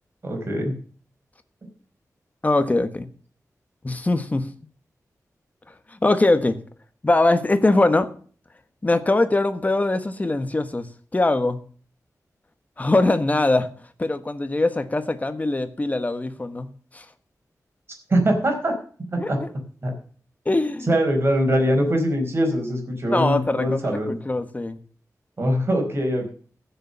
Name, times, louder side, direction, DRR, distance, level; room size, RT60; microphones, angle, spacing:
voice 1, 0.2-0.7 18.1-18.7 19.1-19.4 19.8-19.9 20.9-24.1 25.4-26.3, equal, 40° right, 2 dB, 4.8 m, -22 dB
voice 2, 2.4-3.1 3.8-4.5 6.0-6.6 7.0-8.1 8.8-10.9 11.1-11.6 12.8-13.7 14.0-17.0 19.2-19.5 20.4-20.9 23.1-23.8 24.1-24.8, left 2 dB, 25° left, 10 dB, 1.3 m, -22 dB
15.0 x 6.9 x 6.8 m, 0.43 s
wide cardioid pair, 120°, 6 cm